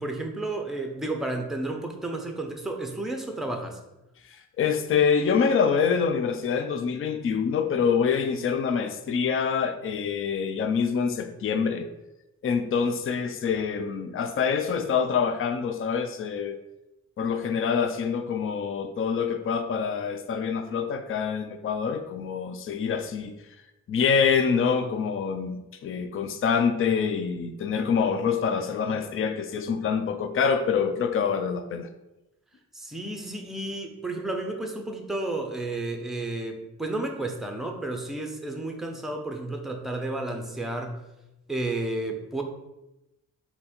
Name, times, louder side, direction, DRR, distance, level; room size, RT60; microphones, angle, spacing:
voice 1, 0.0-3.8 32.7-41.0 41.5-42.4, right 2 dB, ahead, 3 dB, 0.6 m, -32 dB
voice 2, 4.2-11.9 12.4-16.6 17.2-23.3 23.9-31.9, left 6 dB, 45° left, 8 dB, 0.4 m, -26 dB
4.0 x 2.8 x 4.3 m, 0.93 s
cardioid pair, 90°, 32 cm